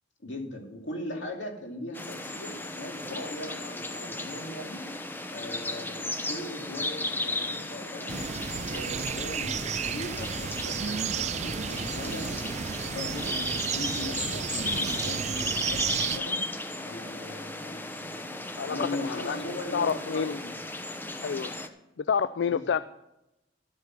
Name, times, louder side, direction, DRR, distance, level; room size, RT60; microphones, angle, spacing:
voice 1, 0.2-8.2 8.7-12.5 12.9-15.8 16.1-16.4 16.8-18.2 18.7-20.6 22.4-22.8, left 1 dB, 90° left, 2 dB, 2.5 m, -39 dB
sound 1, 1.9-21.7, left 2 dB, 10° left, 0.8 m, -35 dB
sound 2, 8.1-16.2, right 7 dB, 40° right, 0.4 m, -32 dB
voice 2, 18.6-19.4 19.7-20.4 21.2-21.6 22.0-22.8, left 6 dB, 70° left, 14 dB, 0.4 m, -28 dB
12.0 x 8.2 x 5.9 m, 0.91 s
head